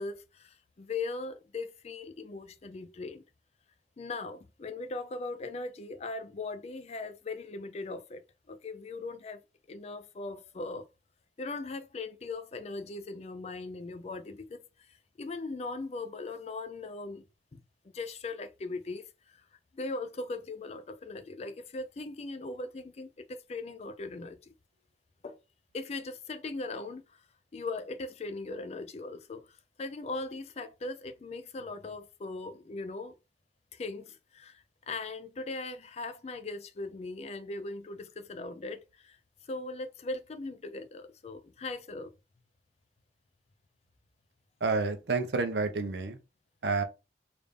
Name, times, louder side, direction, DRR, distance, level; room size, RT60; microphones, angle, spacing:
voice 1, 0.0-3.2 4.0-8.2 8.5-9.4 9.7-10.9 11.4-17.2 17.5-19.5 19.7-24.5 25.2-25.4 25.7-27.2 27.5-33.2 33.7-39.2 39.4-42.1, left 3 dB, 35° left, 0.4 m, -39 dB
voice 2, 44.6-46.2 46.6-46.8, right 4 dB, 70° right, 0.6 m, -29 dB
3.4 x 2.5 x 3.4 m
head